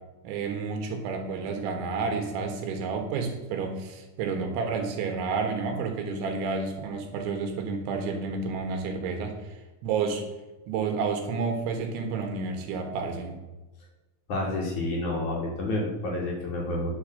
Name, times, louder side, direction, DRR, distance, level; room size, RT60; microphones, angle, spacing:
voice 1, 0.2-9.6 9.8-10.3 10.7-13.4, right 4 dB, 85° right, 5 dB, 3.8 m, -30 dB
voice 2, 14.3-16.9, left 2 dB, 50° left, -2 dB, 3.1 m, -29 dB
9.6 x 7.0 x 6.6 m, 1.1 s
omnidirectional pair, 5.2 m